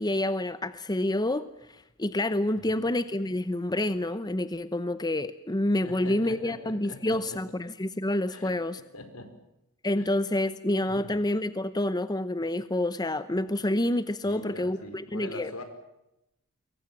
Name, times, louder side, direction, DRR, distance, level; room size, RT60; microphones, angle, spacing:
voice 1, 0.0-8.8 9.8-15.5, left 1 dB, 20° left, 13 dB, 0.9 m, -28 dB
voice 2, 5.8-7.4 8.3-9.3 10.0-10.2 10.9-11.2 14.2-15.6, left 1 dB, 75° left, 9 dB, 4.9 m, -43 dB
27.0 x 23.5 x 7.5 m, 0.88 s
head